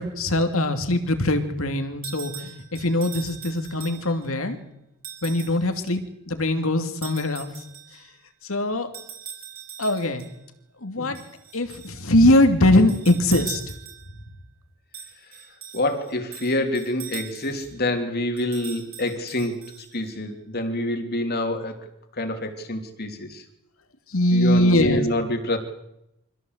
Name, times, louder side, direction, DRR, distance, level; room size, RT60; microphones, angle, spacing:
voice 1, 0.0-4.6 5.2-7.5 8.5-8.9 9.8-10.3 10.8-11.2 11.5-13.6 24.1-25.1, left 1 dB, 65° left, 7 dB, 2.7 m, -21 dB
sound 1, 2.0-4.3 5.0-5.6 7.0-8.0 8.9-10.3 11.1-12.0 12.7-14.2 14.9-17.7 18.4-20.1, right 9 dB, 45° right, 6.1 m, -40 dB
voice 2, 15.7-19.6 19.9-21.7 22.2-23.4 24.3-25.6, left 1 dB, 45° left, 6 dB, 3.1 m, -26 dB
25.5 x 16.5 x 8.1 m, 0.84 s
head